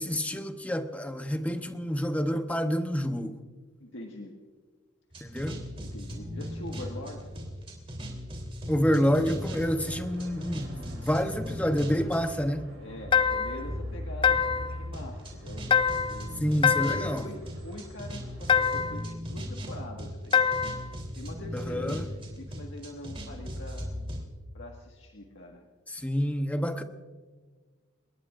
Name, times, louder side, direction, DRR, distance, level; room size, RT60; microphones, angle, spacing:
voice 1, 0.0-3.4 5.2-5.6 8.7-12.7 16.4-17.2 21.5-22.1 25.9-26.8, equal, 5° left, 0.9 m, -28 dB
voice 2, 3.8-4.3 5.7-7.3 12.8-16.4 16.9-23.9 24.5-25.6, left 1 dB, 65° left, 1.7 m, -44 dB
oldskool loop, 5.1-12.4 13.0-24.2, equal, 25° right, 3.4 m, -38 dB
sound 1, 9.1-18.7, equal, 90° right, 6.4 m, -47 dB
sound 2, 13.1-13.7 14.2-14.8 15.7-16.2 16.6-17.2 18.5-19.0 20.3-20.9, left 7 dB, 25° left, 0.4 m, -24 dB
28.5 x 19.5 x 2.5 m
head